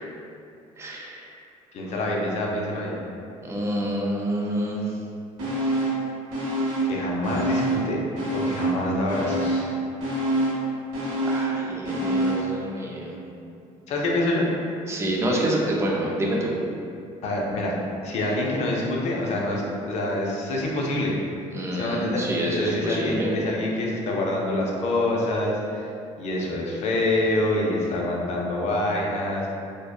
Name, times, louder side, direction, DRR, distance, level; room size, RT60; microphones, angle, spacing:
voice 1, 0.8-1.2 3.4-4.8 11.3-13.1 14.9-16.5 21.5-23.3, right 1 dB, 20° right, -2 dB, 0.4 m, -27 dB
voice 2, 1.7-3.0 6.8-8.0 8.3-9.7 13.9-14.5 17.2-17.7 18.0-21.2 21.7-22.3 22.6-25.9 26.2-29.5, left 1 dB, 60° left, -2 dB, 0.5 m, -26 dB
sound 1, 5.4-6.0 6.3-7.9 8.2-12.5 12.9-13.0, right 1 dB, 85° right, 0.8 m, -26 dB
2.6 x 2.1 x 2.2 m, 2.5 s
cardioid pair, 115°, 13 cm